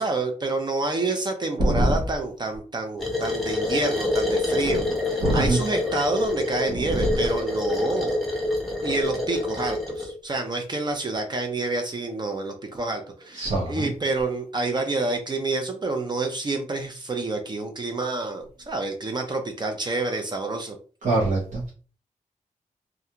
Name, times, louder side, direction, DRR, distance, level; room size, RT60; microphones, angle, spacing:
voice 1, 0.0-8.2 8.8-20.8, right 3 dB, 35° right, 4 dB, 0.4 m, -28 dB
voice 2, 1.6-1.9 4.6-4.8 5.2-5.6 6.8-7.1 13.4-13.9 21.0-21.7, right 1 dB, 70° right, -4 dB, 0.8 m, -23 dB
sound 1, 3.0-10.1, left 2 dB, ahead, 0.8 m, -26 dB
2.4 x 2.2 x 2.8 m, 0.38 s
wide cardioid pair, 150°, 13 cm